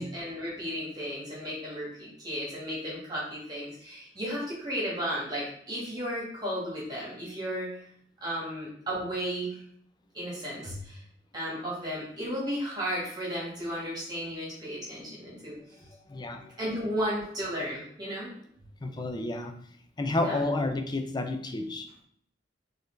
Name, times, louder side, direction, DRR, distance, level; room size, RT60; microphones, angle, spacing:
voice 1, 0.0-7.8 8.2-9.6 10.1-11.0 11.3-15.6 16.6-18.3 20.2-20.4, equal, 20° right, -6 dB, 1.5 m, -34 dB
voice 2, 16.1-16.6 18.8-19.5 20.0-21.9, left 2 dB, 25° left, 6 dB, 0.4 m, -30 dB
4.2 x 3.3 x 3.2 m, 0.65 s
head